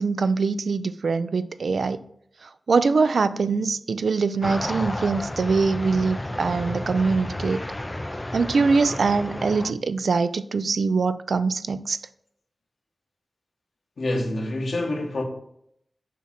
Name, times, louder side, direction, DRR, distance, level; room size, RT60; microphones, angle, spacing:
voice 1, 0.0-2.1 2.4-7.7 8.3-12.0, right 4 dB, 80° right, 0.3 m, -23 dB
sound 1, 4.4-9.7, left 1 dB, 20° left, 0.3 m, -32 dB
voice 2, 14.0-15.2, left 1 dB, 75° left, 1.4 m, -26 dB
7.0 x 4.8 x 4.3 m
wide cardioid pair, 70°, 0 cm